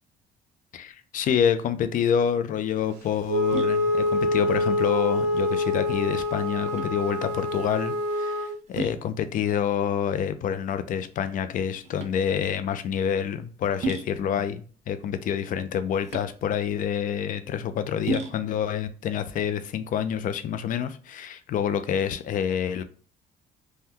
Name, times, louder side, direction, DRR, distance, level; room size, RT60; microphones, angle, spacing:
voice 1, 0.7-22.8, left 8 dB, 50° left, 0.4 m, -27 dB
sound 1, 2.6-20.5, right 3 dB, 40° right, 0.6 m, -38 dB
Wind instrument woodwind instrument, 3.3-8.6, left 2 dB, 85° right, 0.5 m, -26 dB
3.5 x 2.2 x 2.8 m
cardioid pair, 110°, 17 cm